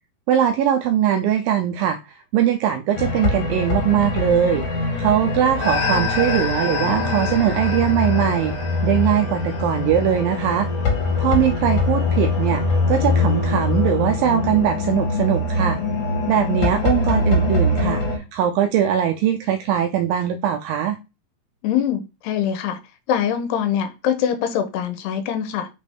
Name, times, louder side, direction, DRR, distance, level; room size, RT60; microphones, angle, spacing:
voice 1, 0.3-4.6 5.0-8.6 8.8-10.7 11.2-15.8 16.3-21.0, right 10 dB, 85° right, 2.0 m, -21 dB
sound 1, 2.9-18.2, left 3 dB, 55° left, 3.1 m, -22 dB
voice 2, 21.6-22.8 23.1-25.7, left 9 dB, 90° left, 3.0 m, -23 dB
6.2 x 5.2 x 3.5 m
omnidirectional pair, 4.6 m